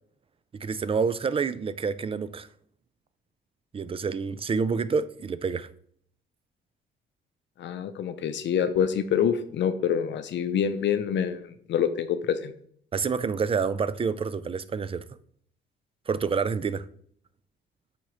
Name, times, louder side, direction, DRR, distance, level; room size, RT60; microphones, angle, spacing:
voice 1, 0.5-2.5 3.7-5.7 12.9-15.0 16.1-16.9, right 5 dB, 30° right, 0.4 m, -28 dB
voice 2, 7.6-12.5, left 8 dB, 65° left, 0.6 m, -26 dB
8.2 x 4.2 x 3.0 m
cardioid pair, 90°, 20 cm